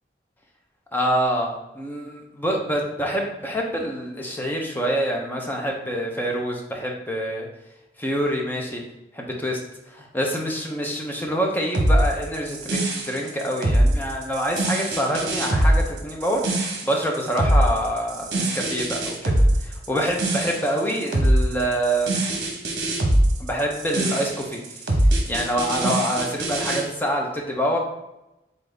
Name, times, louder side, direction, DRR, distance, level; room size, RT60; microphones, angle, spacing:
voice 1, 0.9-7.5 8.0-8.8 9.1-9.6 9.9-22.1 23.4-25.0 25.3-27.8, equal, 10° left, 0 dB, 0.7 m, -26 dB
sound 1, 11.7-26.8, right 1 dB, 65° right, 0.9 m, -22 dB
4.0 x 3.9 x 3.4 m, 0.94 s
head